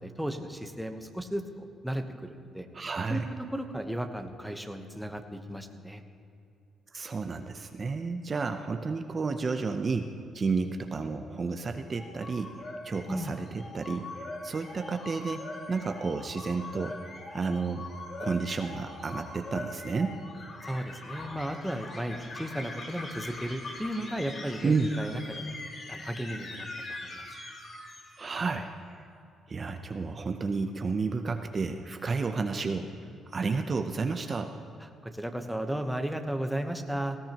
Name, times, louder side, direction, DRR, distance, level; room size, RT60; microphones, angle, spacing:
voice 1, 0.0-2.7 3.1-3.2 3.5-6.0 13.1-13.3 20.6-25.5 25.9-27.3 34.8-37.2, right 1 dB, ahead, 5 dB, 1.0 m, -35 dB
voice 2, 2.7-3.3 6.9-12.5 12.8-17.0 17.3-17.9 18.2-20.2 24.6-24.9 28.2-29.1 29.5-32.9 33.3-34.5, right 4 dB, 35° right, 6 dB, 0.7 m, -31 dB
sound 1, 11.9-28.5, left 2 dB, 45° left, 2.3 m, -42 dB
18.5 x 16.5 x 3.0 m, 2.6 s
cardioid pair, 90°, 0 cm